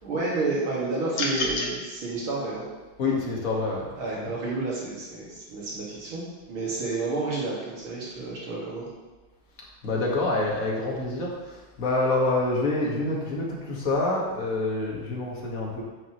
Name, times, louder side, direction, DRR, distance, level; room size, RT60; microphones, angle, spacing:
voice 1, 0.0-2.6 4.0-6.2 6.5-8.9, right 3 dB, 75° right, -6 dB, 3.0 m, -30 dB
sound 1, 1.1-1.7, left 2 dB, 80° left, 2.0 m, -27 dB
voice 2, 3.0-3.9 4.1-4.3 9.8-15.8, left 2 dB, 45° left, -3 dB, 1.9 m, -27 dB
9.7 x 7.2 x 3.1 m, 1.2 s
omnidirectional pair, 2.3 m